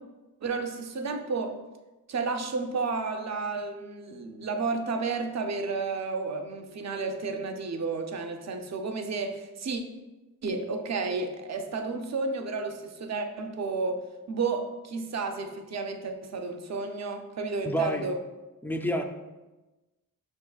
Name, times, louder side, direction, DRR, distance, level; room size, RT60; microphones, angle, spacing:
voice 1, 0.4-1.6 2.1-9.8 10.4-18.2, right 4 dB, 50° right, 6 dB, 0.5 m, -32 dB
voice 2, 17.6-18.1 18.6-19.0, equal, 5° left, 5 dB, 0.3 m, -28 dB
5.9 x 3.7 x 2.3 m, 1.1 s
wide cardioid pair, 95°, 35 cm